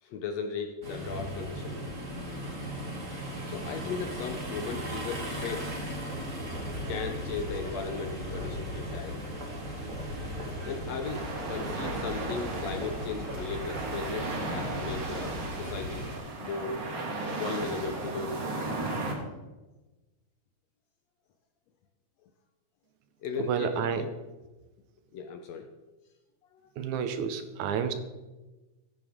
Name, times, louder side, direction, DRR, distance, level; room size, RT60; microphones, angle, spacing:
voice 1, 0.0-1.8 3.5-5.8 6.9-9.3 10.6-16.0 16.4-16.8 17.4-18.8 23.2-24.2 25.1-25.7 26.6-26.7, left 5 dB, 75° left, 5 dB, 1.7 m, -37 dB
sound 1, 0.8-16.2, right 1 dB, 30° right, 1.8 m, -38 dB
sound 2, 6.5-15.9, left 2 dB, 15° left, 2.8 m, -42 dB
sound 3, 11.0-19.2, right 2 dB, 50° right, 2.3 m, -36 dB
voice 2, 23.5-24.0 26.8-27.9, right 7 dB, 75° right, 9 dB, 2.0 m, -30 dB
15.5 x 8.0 x 3.5 m, 1.1 s
omnidirectional pair, 3.6 m